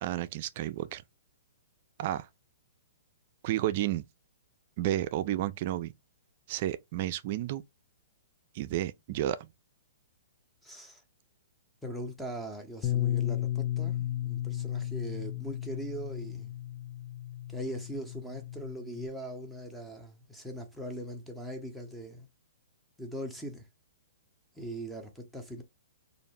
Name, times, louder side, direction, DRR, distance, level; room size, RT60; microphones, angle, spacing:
voice 1, 0.0-1.0 2.0-2.3 3.4-4.0 4.8-5.9 6.5-7.6 8.5-9.5, right 13 dB, 50° right, 0.3 m, -31 dB
voice 2, 10.6-11.0 11.8-16.5 17.5-22.3 23.0-23.7 24.5-25.6, right 1 dB, ahead, 0.7 m, -40 dB
Bass guitar, 12.8-19.1, left 13 dB, 30° left, 0.4 m, -34 dB
2.5 x 2.1 x 3.2 m
hypercardioid pair, 130°, 0 cm